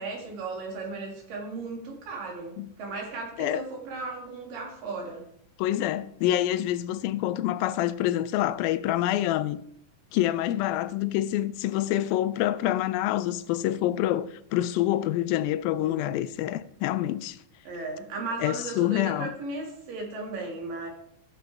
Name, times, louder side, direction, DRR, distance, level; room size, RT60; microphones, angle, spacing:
voice 1, 0.0-5.3 15.8-16.2 17.6-20.9, right 3 dB, 70° right, 3.6 m, -36 dB
voice 2, 5.6-9.6 10.1-17.4 18.4-19.3, left 13 dB, 90° left, 2.3 m, -27 dB
13.5 x 8.6 x 3.3 m
omnidirectional pair, 4.1 m